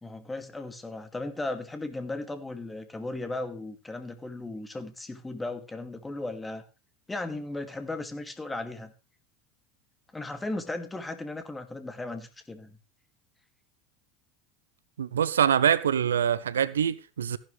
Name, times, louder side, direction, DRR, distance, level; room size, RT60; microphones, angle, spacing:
voice 1, 0.0-6.6 7.1-8.9 10.1-12.8, left 2 dB, 15° left, 2.4 m, -36 dB
voice 2, 15.0-17.4, right 8 dB, 75° right, 0.6 m, -24 dB
15.0 x 11.0 x 3.3 m
figure-of-eight pair, 75°, 0 cm